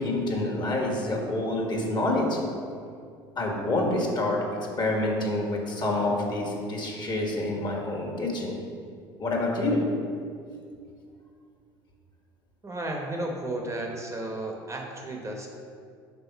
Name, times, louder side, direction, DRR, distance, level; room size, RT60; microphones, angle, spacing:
voice 1, 0.0-2.4 3.4-4.4 4.8-8.5 9.2-9.9, left 2 dB, 35° left, -1 dB, 1.6 m, -27 dB
voice 2, 12.6-15.5, right 1 dB, 25° right, 1 dB, 1.0 m, -33 dB
5.9 x 3.7 x 5.7 m, 2.3 s
hypercardioid pair, 75°, 13 cm